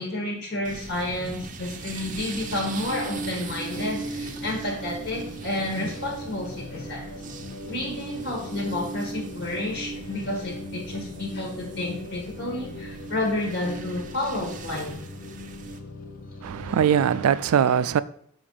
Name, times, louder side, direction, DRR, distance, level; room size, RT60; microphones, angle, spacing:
voice 1, 0.0-7.1 7.7-15.0, left 1 dB, 60° left, 1.4 m, -30 dB
sound 1, 0.6-15.8, right 4 dB, 35° right, 0.5 m, -42 dB
sound 2, 1.4-17.4, right 1 dB, 40° left, 0.7 m, -38 dB
voice 2, 16.4-18.0, right 8 dB, 90° right, 0.3 m, -21 dB
6.2 x 5.2 x 3.9 m
head